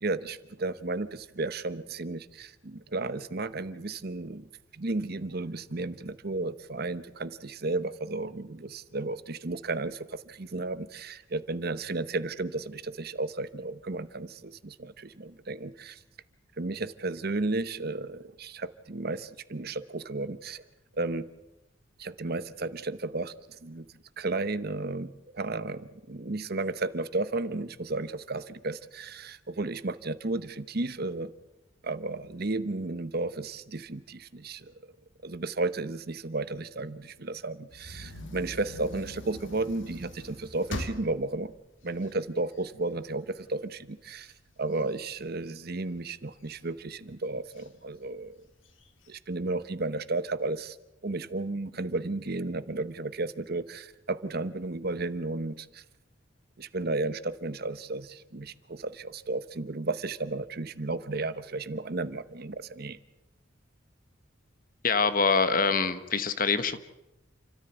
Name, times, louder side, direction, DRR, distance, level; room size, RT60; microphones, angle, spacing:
voice 1, 0.0-4.5 4.7-16.0 16.6-20.6 21.0-21.2 22.0-23.9 24.2-31.3 31.8-34.7 35.2-41.5 41.8-44.3 44.6-48.4 49.1-50.8 51.0-55.8 56.6-63.0, right 2 dB, 50° right, 14 dB, 1.0 m, -33 dB
sound 1, 37.7-42.9 43.4-43.5 43.8-45.9 46.4-46.9 47.5-47.7 47.9-48.0 48.5-49.1, left 1 dB, 75° left, 2.9 m, -42 dB
voice 2, 64.8-66.8, left 4 dB, 45° left, 12 dB, 1.3 m, -25 dB
29.0 x 13.5 x 8.1 m, 0.95 s
head